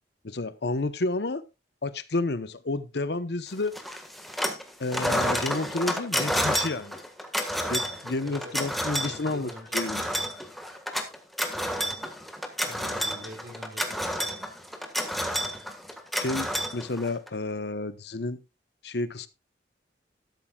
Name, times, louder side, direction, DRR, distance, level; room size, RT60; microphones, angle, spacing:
voice 1, 0.2-1.4 1.8-3.8 4.8-7.0 7.7-10.0 12.8-12.9 16.2-18.4 18.8-19.3, left 2 dB, 65° left, 0.9 m, -30 dB
sound 1, 3.7-4.6 4.9-17.3, equal, ahead, 1.6 m, -30 dB
voice 2, 8.2-10.0 12.6-14.4, equal, 85° right, 5.7 m, -46 dB
13.5 x 11.5 x 2.3 m
head